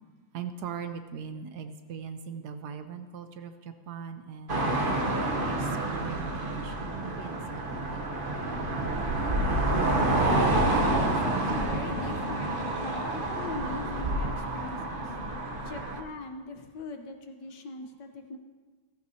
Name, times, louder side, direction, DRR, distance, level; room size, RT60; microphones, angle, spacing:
voice 1, 0.3-4.7 5.4-8.1, right 7 dB, 70° right, 9 dB, 1.1 m, -40 dB
sound 1, 4.5-16.0, right 2 dB, 35° right, 0.9 m, -28 dB
voice 2, 10.4-15.1 15.6-18.4, left 3 dB, 70° left, 5 dB, 1.5 m, -41 dB
15.5 x 14.0 x 2.8 m, 1.4 s
omnidirectional pair, 2.0 m